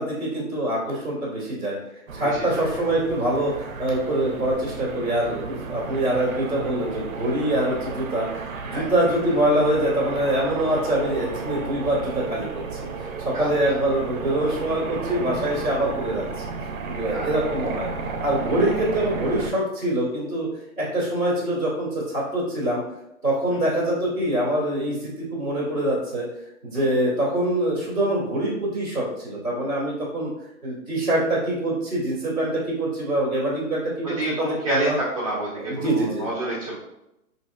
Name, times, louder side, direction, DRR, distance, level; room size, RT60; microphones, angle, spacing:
voice 1, 0.0-1.7 2.1-8.2 8.6-12.5 13.2-16.4 16.9-17.9 18.2-20.5 20.8-22.8 23.2-26.2 26.6-30.3 30.6-35.0 35.6-36.2, right 1 dB, 10° left, -15 dB, 0.9 m, -24 dB
voice 2, 2.1-2.6 8.7-8.9 13.3-13.8 17.1-17.3 23.5-23.6 26.7-26.9 34.2-36.7, right 1 dB, 25° right, -10 dB, 0.7 m, -29 dB
sound 1, 2.1-19.5, right 4 dB, 65° right, 0.6 m, -33 dB
4.3 x 2.8 x 2.3 m, 0.86 s
hypercardioid pair, 170°, 43 cm